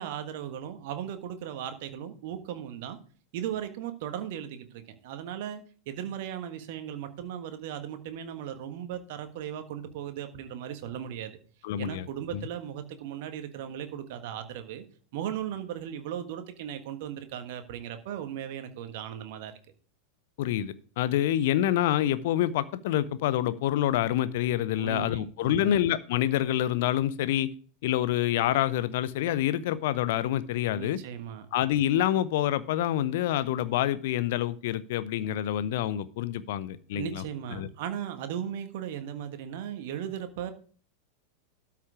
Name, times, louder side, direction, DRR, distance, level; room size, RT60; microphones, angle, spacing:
voice 1, 0.0-3.0 3.3-11.4 11.8-14.8 15.1-19.5 24.8-25.8 30.8-31.5 36.9-40.5, right 9 dB, 50° right, 8 dB, 1.5 m, -37 dB
voice 2, 11.6-12.1 12.3-12.4 20.4-27.5 27.8-31.0 31.5-37.2 37.6-37.7, left 12 dB, 50° left, 15 dB, 0.6 m, -27 dB
12.5 x 5.9 x 4.7 m, 0.42 s
figure-of-eight pair, 90°, 0 cm